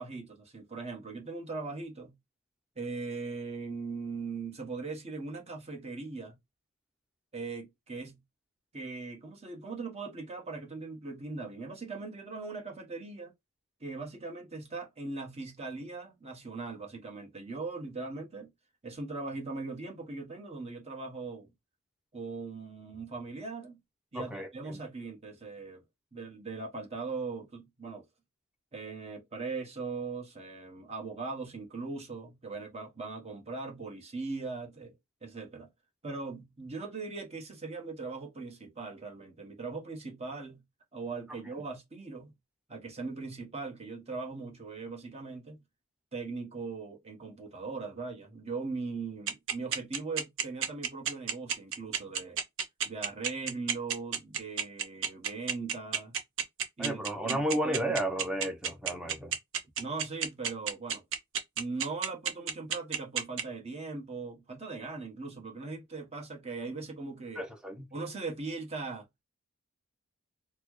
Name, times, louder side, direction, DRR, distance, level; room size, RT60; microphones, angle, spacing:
voice 1, 0.0-2.1 2.8-6.4 7.3-8.2 8.7-13.3 13.8-18.5 18.8-21.5 22.1-23.8 24.1-25.8 26.1-28.0 28.7-34.9 35.2-35.7 36.0-40.6 40.9-42.3 42.7-45.6 46.1-52.4 52.8-56.2 56.8-57.9 59.8-61.0 61.6-67.4 67.9-69.0, right 4 dB, 30° right, 1.0 m, -40 dB
voice 2, 24.1-24.8 56.8-59.3 67.4-67.9, right 1 dB, 5° right, 0.6 m, -33 dB
sound 1, 49.3-63.4, right 7 dB, 60° right, 0.7 m, -30 dB
4.1 x 2.1 x 3.0 m
head